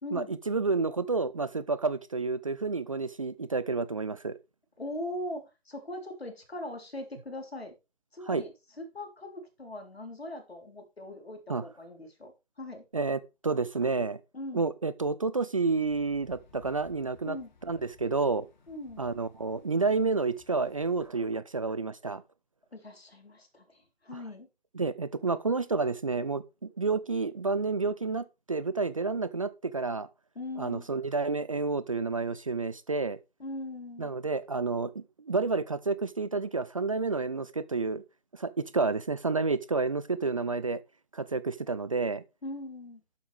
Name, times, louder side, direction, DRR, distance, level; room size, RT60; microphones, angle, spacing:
voice 1, 0.1-4.4 8.3-8.4 11.5-11.6 12.9-14.2 14.5-17.4 17.6-18.5 19.0-22.2 24.1-24.2 24.7-30.1 30.6-33.2 34.0-38.0 38.3-40.8 41.1-42.2, right 4 dB, 35° right, 0.5 m, -30 dB
voice 2, 4.8-7.7 8.1-12.8 14.3-14.7 17.2-17.5 18.7-19.1 22.7-24.5 30.4-30.9 33.4-34.1 42.4-43.0, left 1 dB, 70° left, 3.7 m, -40 dB
sound 1, 15.6-21.1, left 4 dB, 45° left, 2.4 m, -59 dB
12.0 x 7.7 x 3.4 m
figure-of-eight pair, 145°, 31 cm